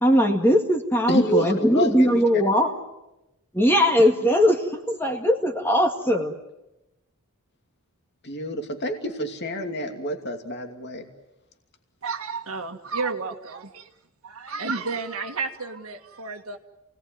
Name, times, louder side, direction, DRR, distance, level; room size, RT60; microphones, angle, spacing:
voice 1, 0.0-2.7 3.5-6.3, equal, 10° left, 3 dB, 2.0 m, -20 dB
voice 2, 1.1-2.4 8.2-11.0, equal, 50° left, 5 dB, 2.7 m, -28 dB
voice 3, 12.0-13.9 14.2-16.6, right 4 dB, 75° right, 2 dB, 1.8 m, -31 dB
28.0 x 19.0 x 9.4 m, 0.95 s
head